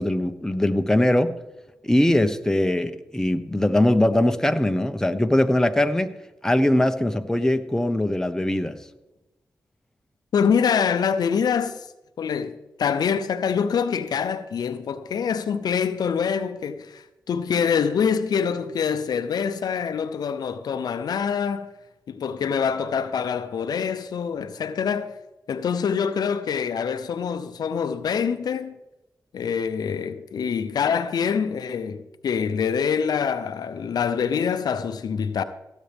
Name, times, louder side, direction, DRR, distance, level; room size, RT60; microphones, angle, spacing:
voice 1, 0.0-1.3 1.8-6.1 6.4-8.7, left 1 dB, 10° left, 1.0 m, -21 dB
voice 2, 10.3-11.9 12.2-21.7 22.1-25.2 25.5-28.7 29.3-35.4, left 7 dB, 75° left, 0.6 m, -25 dB
17.0 x 8.2 x 3.5 m
cardioid pair, 55°, 7 cm